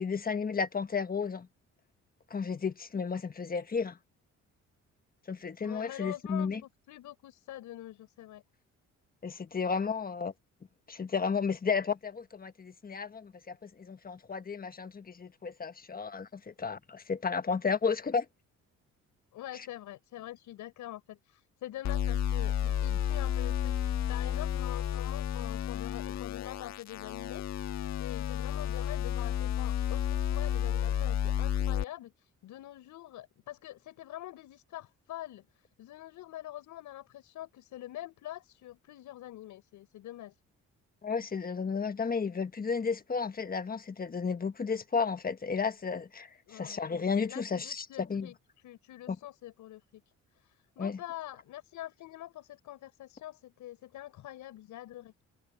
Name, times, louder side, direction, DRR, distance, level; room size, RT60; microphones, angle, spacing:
voice 1, 0.0-1.5 2.3-4.0 5.3-6.6 9.2-10.3 10.9-18.3 41.0-48.3 49.1-49.2 50.8-51.0, left 5 dB, 30° left, 1.4 m, -33 dB
voice 2, 5.6-8.4 19.3-27.7 28.0-40.3 46.5-46.8 47.3-48.4 48.6-50.0 50.3-55.1, left 14 dB, 85° left, 5.6 m, -45 dB
sound 1, 21.8-31.8, left 10 dB, 65° left, 1.4 m, -31 dB
cardioid pair, 90°, 30 cm